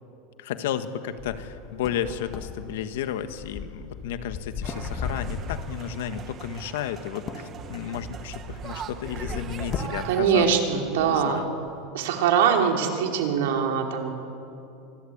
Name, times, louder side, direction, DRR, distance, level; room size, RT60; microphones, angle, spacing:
voice 1, 0.4-10.5 11.0-11.5, left 9 dB, 75° left, 10 dB, 1.5 m, -33 dB
sound 1, 1.2-6.0 7.1-10.6 10.8-11.2 11.7-11.8, left 6 dB, 25° left, 1.5 m, -37 dB
sound 2, 4.6-10.2, right 8 dB, 20° right, 0.9 m, -40 dB
voice 2, 10.0-11.5 11.9-14.1, right 7 dB, 70° right, 3 dB, 3.1 m, -23 dB
25.0 x 21.5 x 8.7 m, 2.8 s
supercardioid pair, 180°, 0 cm